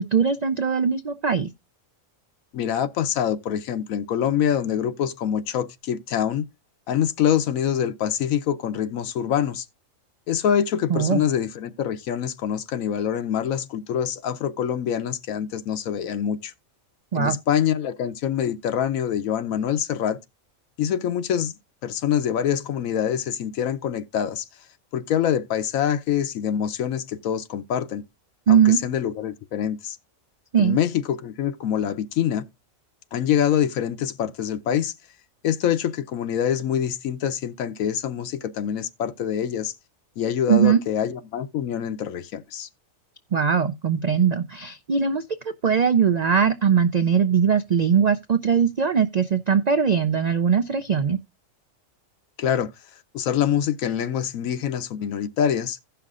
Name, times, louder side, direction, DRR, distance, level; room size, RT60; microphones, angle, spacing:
voice 1, 0.0-1.5 10.9-11.2 17.1-17.4 28.5-28.8 30.5-30.8 40.5-40.8 43.3-45.2 45.6-51.2, right 7 dB, 85° right, 0.3 m, -20 dB
voice 2, 2.5-6.5 6.9-9.6 10.3-16.5 17.1-20.2 20.8-21.6 21.8-24.4 24.9-28.0 28.5-30.0 30.6-32.4 33.1-34.9 35.4-39.7 40.2-42.7 52.4-52.7 53.1-55.8, left 9 dB, 85° left, 1.1 m, -25 dB
16.0 x 5.7 x 2.4 m
omnidirectional pair, 1.4 m